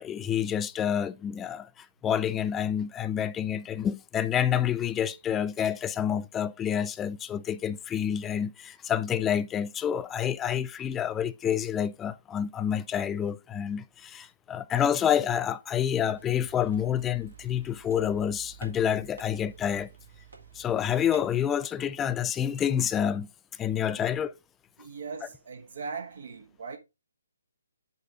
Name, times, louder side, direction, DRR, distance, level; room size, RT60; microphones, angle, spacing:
voice 1, 0.0-19.9 20.6-23.3 23.6-24.3, left 9 dB, 15° left, 0.3 m, -28 dB
sound 1, 16.1-21.4, right 5 dB, 75° right, 2.4 m, -49 dB
voice 2, 24.8-26.8, right 5 dB, 60° right, 1.1 m, -39 dB
6.6 x 4.4 x 3.7 m
figure-of-eight pair, 145°, 0 cm